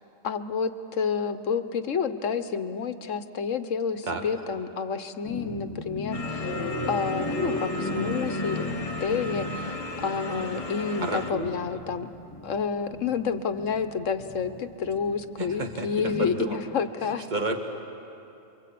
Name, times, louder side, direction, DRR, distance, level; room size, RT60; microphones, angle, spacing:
voice 1, 0.2-6.5 6.9-8.7 9.0-12.1 12.4-17.3, left 6 dB, 85° left, 10 dB, 1.4 m, -29 dB
sound 1, 5.3-16.3, left 2 dB, 15° left, 2.6 m, -36 dB
sound 2, 6.1-11.3, left 2 dB, 30° left, 1.2 m, -36 dB
voice 2, 11.0-11.5 15.4-16.6 17.3-17.6, right 3 dB, 35° right, 3 dB, 1.9 m, -31 dB
27.5 x 23.5 x 8.5 m, 2.8 s
omnidirectional pair, 1.3 m